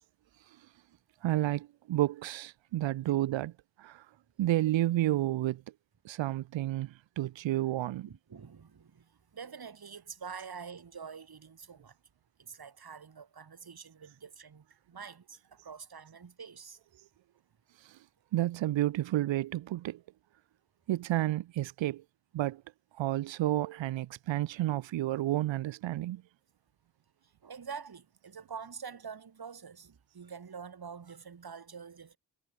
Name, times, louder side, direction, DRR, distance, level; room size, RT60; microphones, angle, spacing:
voice 1, 1.2-3.5 3.8-4.0 4.4-5.6 6.0-8.1 17.9-18.0 18.3-20.0 20.9-22.0 22.3-22.6 23.0-26.2, right 14 dB, 85° right, 1.3 m, -30 dB
voice 2, 8.1-12.0 12.4-16.8 27.4-32.2, right 6 dB, 55° right, 7.6 m, -46 dB
supercardioid pair, 50°, 44 cm